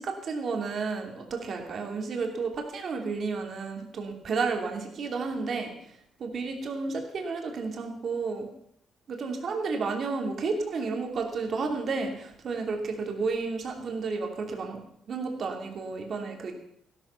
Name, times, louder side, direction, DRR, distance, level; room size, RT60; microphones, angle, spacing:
voice 1, 0.0-5.7 6.2-8.5 9.1-14.8 15.1-16.5, right 4 dB, 45° right, 2 dB, 2.8 m, -32 dB
16.0 x 12.5 x 5.7 m, 0.67 s
cardioid pair, 165°, 0 cm